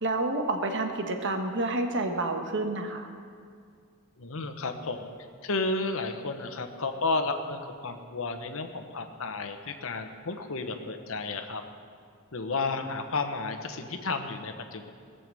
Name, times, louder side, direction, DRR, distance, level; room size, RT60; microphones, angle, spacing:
voice 1, 0.0-3.1, right 2 dB, 60° right, 5 dB, 1.3 m, -29 dB
voice 2, 4.2-5.1 5.4-11.6 12.3-14.9, left 3 dB, 65° left, 7 dB, 1.1 m, -32 dB
18.5 x 6.9 x 7.7 m, 2.2 s
head